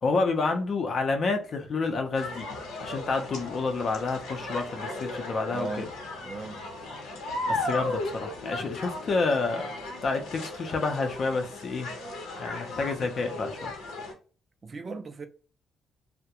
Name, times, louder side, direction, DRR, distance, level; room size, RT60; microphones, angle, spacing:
voice 1, 0.0-2.5 2.8-5.9 7.5-9.7 10.0-11.9 12.4-13.7, left 3 dB, 50° left, 0.5 m, -29 dB
sound 1, 2.1-14.1, left 2 dB, 85° left, 0.7 m, -36 dB
voice 2, 5.5-5.9 6.2-6.6 14.6-15.3, right 3 dB, 35° right, 0.4 m, -36 dB
2.3 x 2.1 x 2.8 m
cardioid pair, 90°, 0 cm